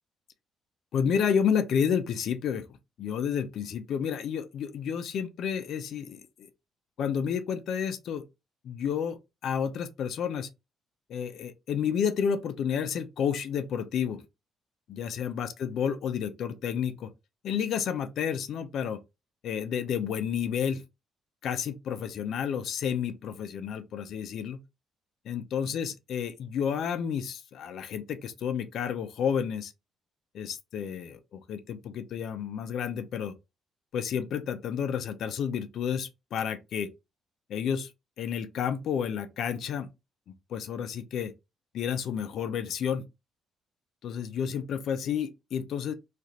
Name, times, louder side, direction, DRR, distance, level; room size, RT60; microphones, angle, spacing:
voice 1, 0.9-2.7 3.0-6.5 7.0-8.2 8.6-9.2 9.4-10.5 11.1-14.2 14.9-17.1 17.4-19.0 19.4-20.8 21.4-24.6 25.2-29.7 30.3-33.3 33.9-36.9 37.5-37.9 38.2-39.9 40.5-41.3 41.7-43.0 44.0-45.9, left 7 dB, 60° left, 0.5 m, -30 dB
3.2 x 2.4 x 2.7 m
cardioid pair, 155°, 0 cm